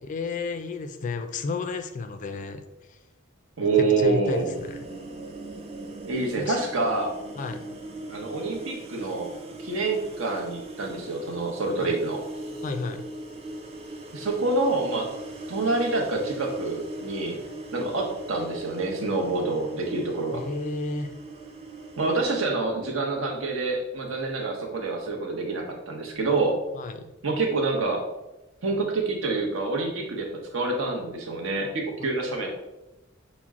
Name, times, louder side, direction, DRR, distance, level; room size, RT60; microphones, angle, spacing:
voice 1, 0.0-2.6 2.9-3.0 3.8-4.8 6.4-6.6 7.4-7.7 11.8-11.9 12.6-13.0 20.3-21.1 26.7-27.1 32.0-32.1, left 4 dB, 40° left, 8 dB, 0.3 m, -32 dB
voice 2, 3.6-4.5 6.1-7.1 8.1-9.3 9.6-12.2 14.1-15.1 15.5-17.4 17.7-20.4 22.0-26.6 27.2-28.1 28.6-30.3 30.5-32.5, right 3 dB, 70° right, 1 dB, 0.8 m, -27 dB
sound 1, 4.3-22.2, right 2 dB, 30° right, 0.5 m, -40 dB
5.9 x 2.1 x 3.5 m, 0.97 s
head